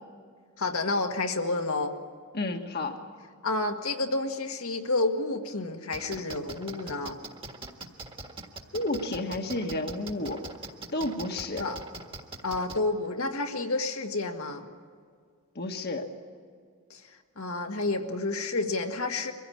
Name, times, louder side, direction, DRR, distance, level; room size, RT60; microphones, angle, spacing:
voice 1, 0.6-1.9 3.4-7.2 11.6-11.8 12.4-14.7 16.9-17.0 17.4-19.3, left 2 dB, 75° left, 4 dB, 1.8 m, -30 dB
voice 2, 2.3-3.0 8.7-10.4 10.9-11.7 15.5-16.1, left 2 dB, 50° left, 4 dB, 1.5 m, -31 dB
sound 1, 5.9-12.8, right 3 dB, 25° right, 1.6 m, -41 dB
24.0 x 16.0 x 8.6 m, 2.1 s
head